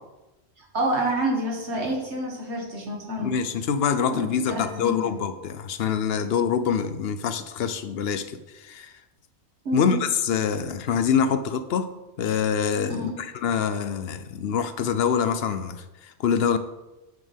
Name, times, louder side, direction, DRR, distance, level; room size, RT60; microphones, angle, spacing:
voice 1, 0.6-3.3 4.1-5.2 9.7-10.0 12.9-13.1, right 1 dB, 90° right, -1 dB, 2.1 m, -28 dB
voice 2, 3.2-8.9 9.7-11.9 12.2-16.6, left 7 dB, 70° left, 10 dB, 0.8 m, -25 dB
9.1 x 6.5 x 3.5 m, 1.0 s
omnidirectional pair, 1.1 m